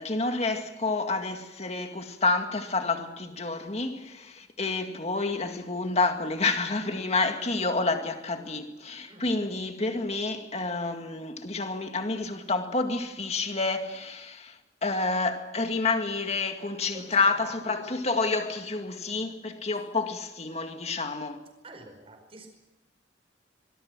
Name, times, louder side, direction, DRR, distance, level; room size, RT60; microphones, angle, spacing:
voice 1, 0.0-21.4, left 3 dB, 35° left, 2.0 m, -29 dB
voice 2, 16.9-17.8 21.6-22.6, right 2 dB, 30° right, 5.0 m, -48 dB
24.5 x 21.5 x 6.1 m
head